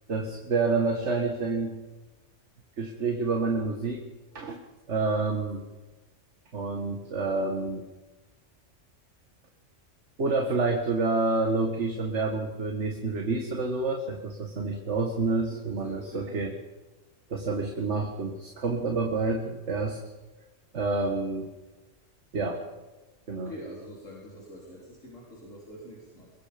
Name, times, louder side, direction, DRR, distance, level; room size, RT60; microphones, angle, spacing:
voice 1, 0.1-1.8 2.8-4.0 4.3-4.6 4.9-5.7 6.5-7.8 10.2-16.5 17.3-20.0 20.7-21.5 22.3-22.6 23.3-23.5, right 3 dB, 65° right, 3 dB, 2.1 m, -28 dB
voice 2, 15.5-16.4 23.4-26.3, equal, 90° left, -4 dB, 4.5 m, -45 dB
22.5 x 22.0 x 5.3 m, 1.1 s
omnidirectional pair, 1.3 m